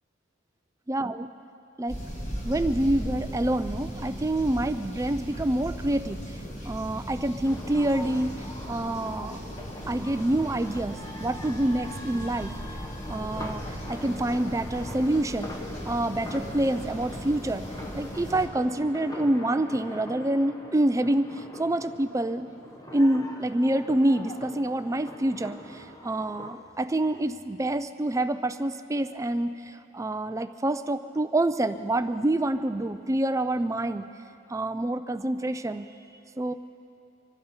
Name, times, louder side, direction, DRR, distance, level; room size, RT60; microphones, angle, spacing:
voice 1, 0.9-1.3 1.8-2.0 2.4-6.2 6.6-8.4 8.7-9.4 9.9-12.5 13.1-15.5 15.8-17.6 17.9-22.5 22.9-34.1 34.5-35.8 36.4-36.5, right 1 dB, 15° right, 10 dB, 0.4 m, -27 dB
sound 1, 1.9-18.5, equal, 35° left, 2.3 m, -38 dB
sound 2, 7.4-26.5, left 1 dB, 20° left, 1.2 m, -42 dB
25.5 x 12.5 x 4.4 m, 2.6 s
head